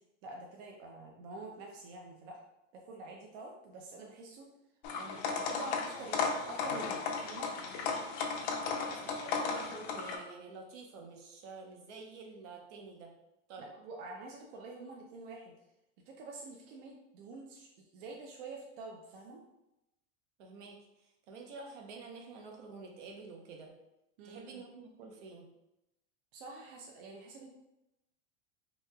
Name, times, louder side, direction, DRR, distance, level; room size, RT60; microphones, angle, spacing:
voice 1, 0.2-2.4 2.7-4.5 5.0-7.5 13.7-15.5 16.1-19.4 24.2-24.6 26.3-27.5, right 3 dB, 50° right, 0 dB, 0.4 m, -47 dB
sound 1, 4.8-10.2, left 5 dB, 50° left, 0.4 m, -35 dB
voice 2, 8.7-13.1 13.5-13.7 20.4-23.7 24.2-25.5, right 4 dB, 75° right, 1 dB, 0.8 m, -49 dB
3.0 x 2.8 x 2.2 m, 0.89 s
supercardioid pair, 155°, 36 cm